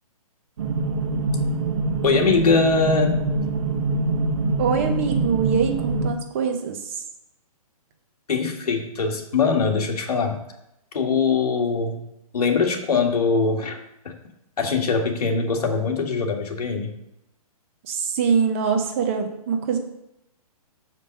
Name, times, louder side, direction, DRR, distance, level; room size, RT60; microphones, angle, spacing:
sound 1, 0.6-6.1, right 3 dB, 50° right, 1.2 m, -24 dB
voice 1, 2.0-3.3 8.3-10.4 10.9-12.1 12.3-13.8 14.1-14.2 14.6-16.9, left 4 dB, 80° left, 3 dB, 1.7 m, -22 dB
voice 2, 4.6-7.0 17.9-19.8, right 6 dB, 20° right, 5 dB, 0.7 m, -23 dB
6.8 x 5.3 x 5.3 m, 0.85 s
hypercardioid pair, 170°, 19 cm